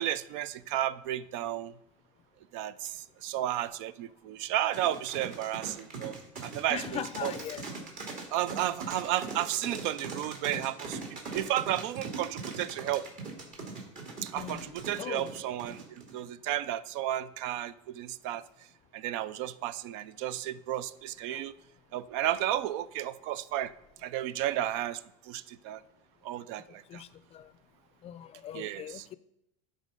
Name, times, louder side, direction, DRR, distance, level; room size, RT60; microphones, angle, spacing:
voice 1, 0.0-1.7 2.5-6.2 6.4-7.3 8.3-13.1 14.2-18.4 18.9-21.5 21.9-23.7 24.0-25.8 26.2-27.0 28.5-29.1, right 12 dB, 70° right, 0.4 m, -33 dB
sound 1, 4.7-16.2, right 4 dB, 50° right, 2.1 m, -40 dB
voice 2, 6.7-7.7 14.3-15.3 21.3-21.4 26.9-27.5 28.0-29.2, left 10 dB, 40° left, 0.4 m, -40 dB
10.0 x 3.7 x 5.4 m
supercardioid pair, 100°, 17 cm